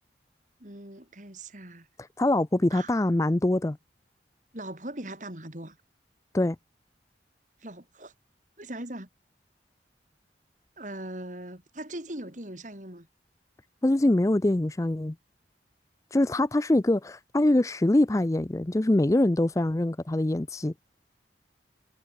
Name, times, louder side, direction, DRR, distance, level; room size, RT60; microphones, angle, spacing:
voice 1, 0.6-1.9 2.7-2.9 4.5-5.8 7.6-8.1 8.6-9.1 10.8-13.1, right 1 dB, 45° right, 3.9 m, -40 dB
voice 2, 2.2-3.8 6.3-6.6 13.8-15.1 16.1-20.7, left 1 dB, 15° left, 0.4 m, -24 dB
head